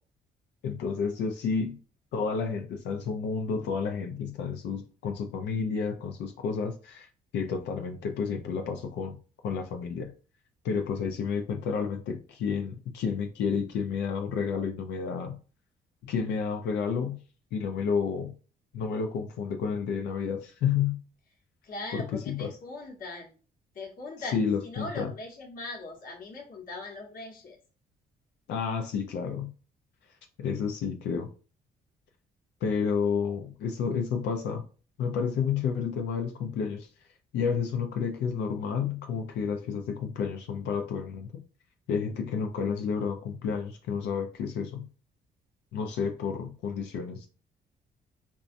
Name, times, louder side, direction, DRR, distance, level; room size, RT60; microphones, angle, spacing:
voice 1, 0.6-1.8 2.1-9.2 9.4-10.1 10.6-15.4 16.0-17.2 17.5-18.3 18.7-21.0 21.9-22.5 24.3-25.1 28.5-29.5 30.4-31.3 32.6-34.6 35.0-36.9 37.3-41.4 41.9-44.9 45.7-47.3, left 6 dB, 85° left, 0.5 m, -30 dB
voice 2, 21.6-23.3 23.7-27.6, left 2 dB, 55° left, 1.0 m, -40 dB
3.9 x 2.3 x 2.5 m
cardioid pair, 105°, 18 cm